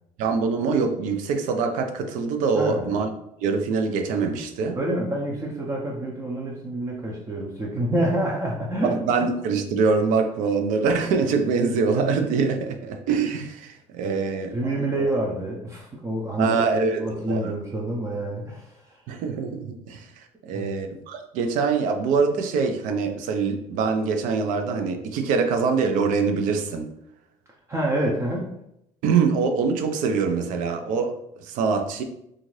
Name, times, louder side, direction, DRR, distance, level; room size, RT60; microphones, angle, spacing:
voice 1, 0.2-3.1 3.4-4.8 8.8-14.7 16.4-17.5 19.1-26.9 29.0-32.0, right 5 dB, 75° right, 6 dB, 0.5 m, -24 dB
voice 2, 2.6-2.9 4.7-9.0 14.0-19.0 20.5-20.9 27.7-28.5, right 1 dB, 20° right, -2 dB, 0.5 m, -28 dB
2.6 x 2.4 x 3.1 m, 0.79 s
supercardioid pair, 100°, 14 cm